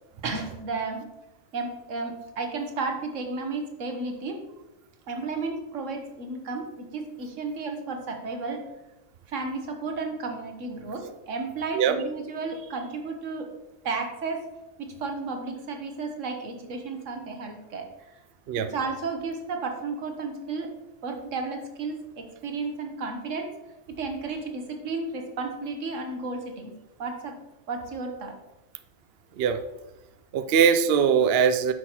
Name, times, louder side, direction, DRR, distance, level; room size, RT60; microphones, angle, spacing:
voice 1, 0.2-1.1 1.5-4.4 5.1-8.6 9.3-13.5 13.8-14.5 14.8-17.9 18.6-20.7 21.0-23.5 23.9-26.7 27.0-27.4 27.7-28.4, right 3 dB, 85° right, 4 dB, 1.5 m, -33 dB
voice 2, 30.3-31.7, right 7 dB, 65° right, 9 dB, 0.7 m, -21 dB
9.6 x 6.3 x 3.0 m, 0.99 s
omnidirectional pair, 1.3 m